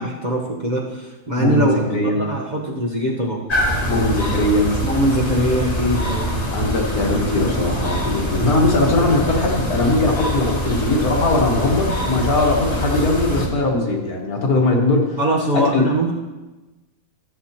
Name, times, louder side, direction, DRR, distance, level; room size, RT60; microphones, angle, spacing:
voice 1, 0.0-3.4 4.8-6.4 15.2-16.1, right 1 dB, 30° right, -3 dB, 1.1 m, -22 dB
voice 2, 1.4-2.2 3.9-4.7 6.5-15.2 15.5-15.9, left 2 dB, 70° left, 0 dB, 2.0 m, -20 dB
sound 1, 3.5-13.5, equal, 25° left, 1.4 m, -24 dB
14.0 x 8.0 x 2.9 m, 1.1 s
omnidirectional pair, 1.6 m